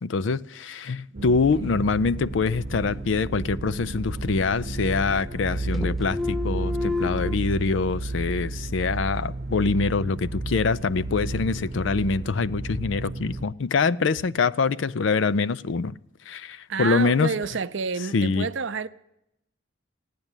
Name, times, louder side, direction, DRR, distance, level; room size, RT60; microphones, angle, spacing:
voice 1, 0.0-15.9 16.3-17.3 18.1-18.5, left 4 dB, 65° left, 0.5 m, -24 dB
sound 1, 1.1-13.5, right 2 dB, 45° right, 1.0 m, -32 dB
voice 2, 1.1-1.8 16.7-18.9, right 5 dB, 65° right, 0.6 m, -30 dB
sound 2, 3.3-4.2 4.5-5.5 5.7-7.4, left 3 dB, ahead, 0.5 m, -32 dB
15.5 x 9.6 x 8.9 m
head